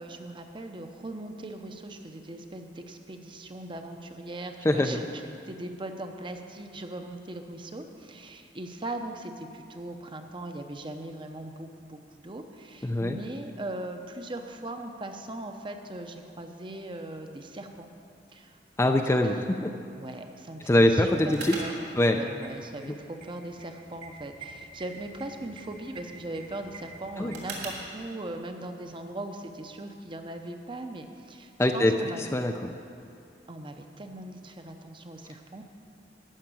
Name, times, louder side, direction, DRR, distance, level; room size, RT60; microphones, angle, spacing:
voice 1, 0.0-17.9 18.3-18.9 19.2-19.4 19.9-21.7 22.1-32.3 33.5-35.6, right 1 dB, 30° right, 5 dB, 0.8 m, -39 dB
voice 2, 4.6-5.0 12.8-13.2 18.8-19.7 20.7-21.6 22.0-22.2 22.8-22.9 27.2-27.3 31.6-31.9 32.2-32.7, left 1 dB, 15° left, 5 dB, 0.4 m, -23 dB
sound 1, 21.3-27.9, right 3 dB, 65° right, 2.6 m, -43 dB
13.0 x 5.9 x 8.9 m, 2.5 s
head